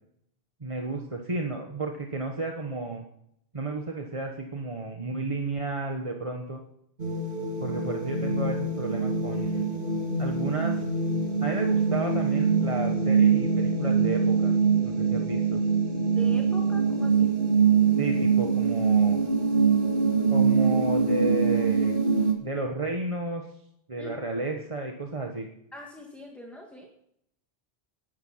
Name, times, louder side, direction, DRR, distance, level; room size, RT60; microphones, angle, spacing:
voice 1, 0.6-3.0 3.5-6.6 7.6-9.7 10.2-10.9 11.4-14.6 14.8-15.6 18.0-19.2 20.3-22.0 22.4-23.5 23.9-25.5, right 3 dB, 30° right, 2 dB, 1.3 m, -32 dB
sound 1, 7.0-22.3, right 5 dB, 55° right, 2.5 m, -24 dB
voice 2, 16.1-17.4 24.0-24.1 25.7-26.9, left 1 dB, ahead, 0 dB, 1.9 m, -43 dB
15.5 x 11.5 x 5.7 m, 0.74 s
omnidirectional pair, 1.1 m